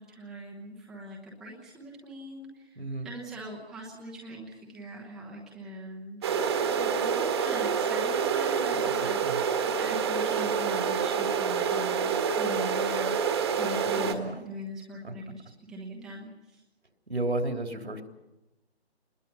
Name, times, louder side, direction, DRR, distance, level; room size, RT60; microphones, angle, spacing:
voice 1, 0.0-15.4 15.7-16.6, right 1 dB, ahead, -3 dB, 1.0 m, -41 dB
voice 2, 2.8-3.1 9.0-9.4 13.8-14.4 15.0-15.1 17.1-18.0, right 2 dB, 80° right, 4 dB, 3.4 m, -33 dB
sound 1, 6.2-14.1, right 6 dB, 25° right, 1.6 m, -27 dB
26.0 x 21.0 x 5.6 m, 1.0 s
figure-of-eight pair, 150°, 32 cm